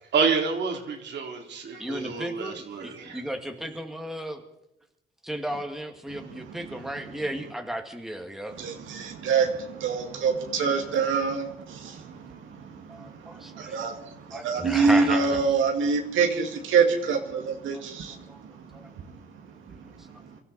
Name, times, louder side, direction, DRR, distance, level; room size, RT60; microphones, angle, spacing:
voice 1, 0.1-3.2, right 5 dB, 60° right, 3 dB, 2.9 m, -28 dB
voice 2, 1.8-4.4 5.2-8.6 12.9-13.8 14.3-15.5 17.7-17.8 18.1-18.4 18.7-18.9 19.7-19.8, right 1 dB, ahead, 4 dB, 1.9 m, -35 dB
voice 3, 8.6-12.6 13.0-14.0 14.3-18.2, right 5 dB, 80° right, 3 dB, 1.9 m, -25 dB
24.5 x 13.0 x 4.1 m, 0.84 s
cardioid pair, 90°, 20 cm